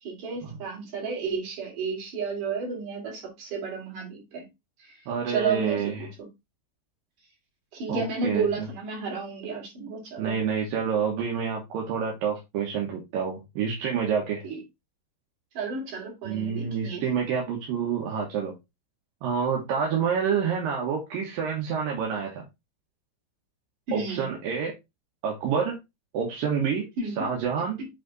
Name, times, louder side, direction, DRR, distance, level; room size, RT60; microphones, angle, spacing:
voice 1, 0.0-4.5 4.8-5.0 5.3-6.3 7.7-10.3 14.4-14.6 15.5-17.0 23.9-24.3 27.0-27.3 27.8-27.9, right 5 dB, 50° right, 3.9 m, -32 dB
voice 2, 5.1-6.1 7.9-8.7 10.2-14.4 16.2-18.5 19.2-22.4 23.9-24.7 25.2-25.8 26.1-26.9 27.2-27.8, right 6 dB, 65° right, 2.6 m, -28 dB
8.0 x 3.3 x 3.9 m
omnidirectional pair, 4.9 m